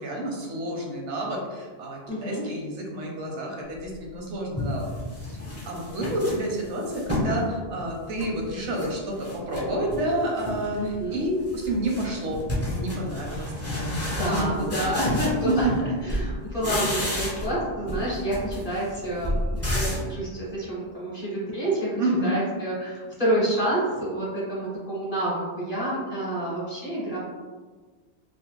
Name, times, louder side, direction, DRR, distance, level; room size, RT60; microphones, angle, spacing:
voice 1, 0.0-4.9 5.3-5.4 5.6-13.9 14.2-15.0 15.4-15.7 22.0-22.3, right 1 dB, 85° right, -1 dB, 1.0 m, -29 dB
voice 2, 2.1-2.5 10.7-11.2 14.2-27.2, right 1 dB, 35° left, -7 dB, 0.8 m, -28 dB
sound 1, 3.9-4.0 4.6-7.4 7.8-8.9 9.2-10.0 10.4-10.8 11.1-15.8 16.1-17.6 17.9-20.1, left 1 dB, 20° left, 0.4 m, -31 dB
2.7 x 2.1 x 3.0 m, 1.4 s
omnidirectional pair, 1.2 m